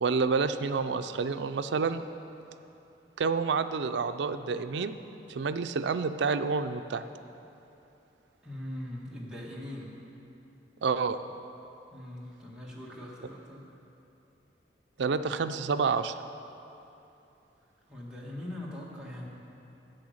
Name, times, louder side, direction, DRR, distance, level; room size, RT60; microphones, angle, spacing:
voice 1, 0.0-2.0 3.2-4.9 5.3-7.0 10.8-11.2 15.0-16.1, right 5 dB, 80° right, 11 dB, 0.4 m, -28 dB
voice 2, 8.4-9.9 11.9-13.7 17.9-19.3, left 1 dB, 5° right, -5 dB, 1.6 m, -41 dB
11.0 x 7.9 x 6.4 m, 2.9 s
head